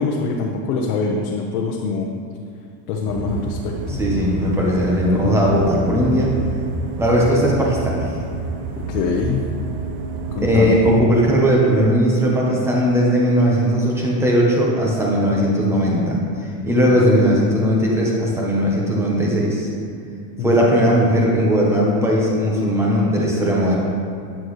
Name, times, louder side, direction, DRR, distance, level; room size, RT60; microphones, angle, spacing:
voice 1, 0.0-2.1 2.9-4.0 5.0-5.3 8.9-9.4 10.3-10.8 16.9-17.0 20.4-20.8, left 4 dB, 70° left, -1 dB, 1.0 m, -24 dB
sound 1, 3.0-11.0, right 4 dB, 70° right, 1.1 m, -28 dB
voice 2, 3.9-6.3 7.0-8.1 10.4-16.2 16.6-19.7 20.4-23.8, equal, 5° right, -4 dB, 0.9 m, -18 dB
9.2 x 9.0 x 3.2 m, 2.4 s
cardioid pair, 180°, 45 cm